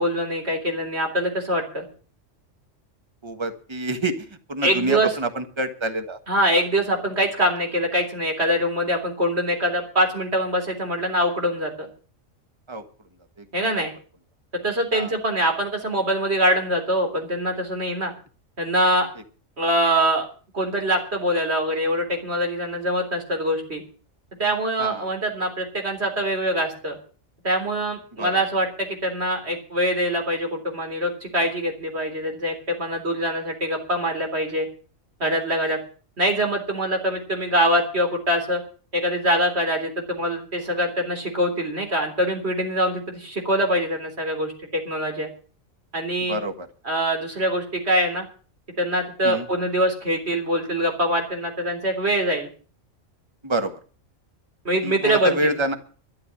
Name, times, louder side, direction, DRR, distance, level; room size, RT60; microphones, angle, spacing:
voice 1, 0.0-1.8 4.6-5.1 6.3-11.9 13.5-13.9 14.5-18.1 18.6-19.1 19.6-20.3 20.5-23.8 24.4-27.0 27.4-34.7 35.2-35.8 36.2-38.6 38.9-45.3 45.9-46.4 46.9-48.2 48.8-52.5 54.6-55.5, equal, 50° right, 3 dB, 3.9 m, -24 dB
voice 2, 3.2-6.2 12.7-12.8 13.4-13.7 14.9-15.1 24.8-25.1 28.2-28.4 46.2-46.7 49.2-49.5 53.4-53.8 54.8-55.8, right 1 dB, 20° right, 8 dB, 1.4 m, -27 dB
13.0 x 9.0 x 8.5 m, 0.40 s
omnidirectional pair, 1.4 m